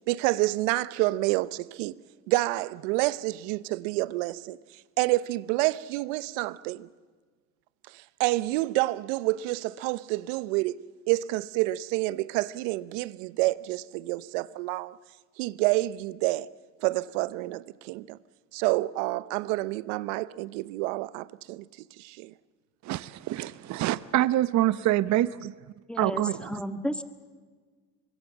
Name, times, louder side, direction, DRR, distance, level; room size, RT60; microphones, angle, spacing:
voice 1, 0.1-2.0 2.3-4.6 5.0-6.9 8.2-14.9 15.4-16.5 16.8-18.2 18.5-21.6 22.0-22.3, right 19 dB, 80° right, 0.9 m, -28 dB
voice 2, 22.8-25.5 26.0-26.6, right 14 dB, 50° right, 0.8 m, -26 dB
voice 3, 25.9-27.0, equal, 5° left, 1.7 m, -32 dB
25.0 x 21.5 x 7.3 m
supercardioid pair, 100°, 37 cm